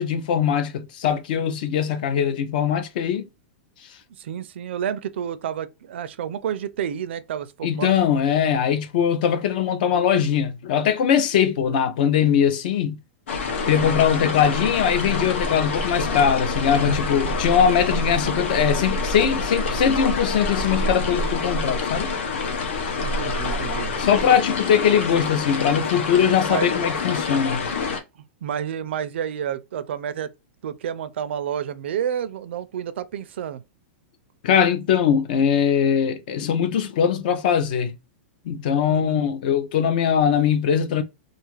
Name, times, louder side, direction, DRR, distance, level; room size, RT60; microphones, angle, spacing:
voice 1, 0.0-3.3 7.6-13.0 13.7-22.1 24.0-27.7 34.4-38.0 38.5-41.0, left 8 dB, 45° left, 0.4 m, -21 dB
voice 2, 4.1-8.0 11.6-11.8 13.8-14.0 22.1-22.2 23.0-24.0 26.5-26.7 28.4-30.3 30.6-33.6 38.9-39.3, right 9 dB, 65° right, 0.4 m, -30 dB
sound 1, 13.3-28.0, left 3 dB, 80° left, 0.7 m, -26 dB
2.4 x 2.4 x 3.1 m
supercardioid pair, 175°, 7 cm